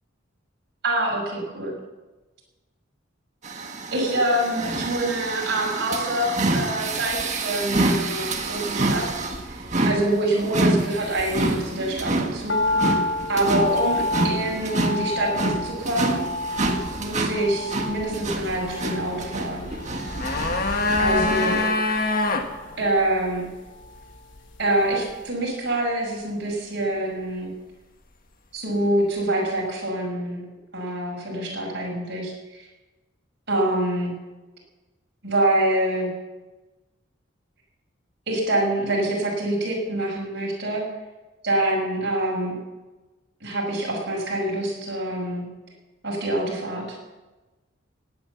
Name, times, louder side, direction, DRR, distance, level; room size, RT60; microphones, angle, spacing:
voice 1, 0.8-1.7 3.9-9.1 9.5-12.9 13.3-16.2 17.0-19.7 21.0-21.6 22.8-23.5 24.6-27.5 28.5-30.4 30.7-32.7 33.5-34.1 35.2-36.1 38.3-40.9 41.4-42.5 43.4-45.5 46.0-47.0, right 1 dB, 55° right, -3 dB, 6.3 m, -25 dB
sound 1, 3.4-21.7, right 2 dB, 35° right, 1.6 m, -27 dB
sound 2, 12.5-24.8 25.0-25.1, left 2 dB, 60° left, 1.4 m, -30 dB
sound 3, 19.9-22.5 22.7-22.8, left 2 dB, 45° left, 1.5 m, -23 dB
17.0 x 9.8 x 7.2 m, 1.1 s
head